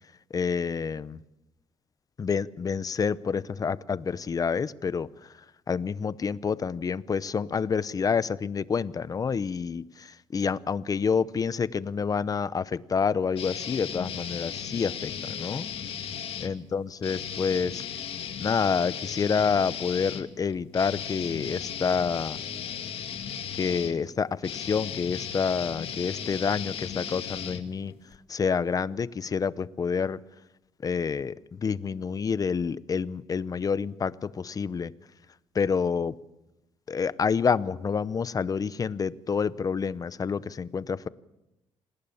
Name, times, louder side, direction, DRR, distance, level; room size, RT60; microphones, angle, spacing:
voice 1, 0.3-1.2 2.2-5.3 5.7-15.7 16.4-17.8 18.4-22.4 23.6-27.9 28.3-30.2 30.8-34.9 35.5-36.2 36.9-41.1, left 6 dB, 35° left, 17 dB, 0.8 m, -28 dB
sound 1, 13.4-16.5 17.0-28.2, left 8 dB, 55° left, 2.1 m, -36 dB
27.0 x 19.5 x 7.2 m, 0.94 s
cardioid pair, 115°, 11 cm